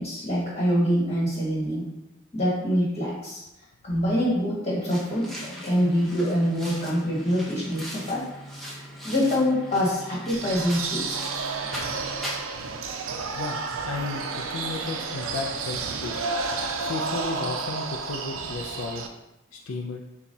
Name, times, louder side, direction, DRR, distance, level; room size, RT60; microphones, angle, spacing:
voice 1, 0.0-1.9 2.3-3.4 3.8-8.2 9.0-11.2, equal, 30° left, -6 dB, 1.5 m, -25 dB
sound 1, 4.9-12.4, equal, ahead, 0.6 m, -39 dB
sound 2, 10.3-19.1, right 4 dB, 80° right, 0.5 m, -31 dB
voice 2, 13.9-16.4 16.8-19.0 19.5-20.0, left 4 dB, 85° left, 1 dB, 0.4 m, -34 dB
6.9 x 2.4 x 2.7 m, 0.87 s
head